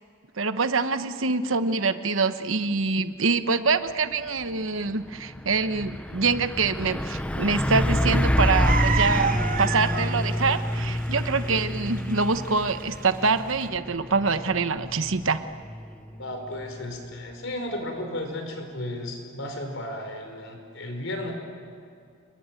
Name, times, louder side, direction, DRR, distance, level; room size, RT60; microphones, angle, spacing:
voice 1, 0.4-15.4, right 4 dB, 70° right, 10 dB, 1.1 m, -25 dB
Truck, 4.3-4.5 4.9-17.4, equal, 5° left, 0.6 m, -28 dB
sound 1, 8.6-13.6, right 6 dB, 40° right, 1.0 m, -29 dB
voice 2, 16.1-21.3, left 1 dB, 65° left, 4 dB, 5.2 m, -34 dB
28.0 x 22.0 x 9.2 m, 2.4 s
head